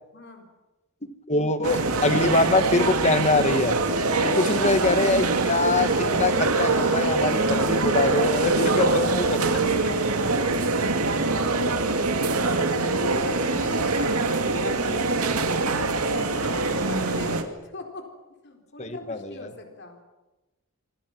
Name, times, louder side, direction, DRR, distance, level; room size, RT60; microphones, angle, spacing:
voice 1, 0.1-0.5 4.1-4.6 8.3-8.8 11.4-12.2 12.5-18.1 18.4-20.0, left 2 dB, 50° left, 3 dB, 4.4 m, -39 dB
voice 2, 1.3-3.8 4.4-9.5 18.8-19.5, left 2 dB, 30° left, 10 dB, 1.4 m, -24 dB
sound 1, 1.6-17.4, right 3 dB, 85° right, 2.4 m, -24 dB
26.0 x 25.5 x 6.1 m, 1.1 s
head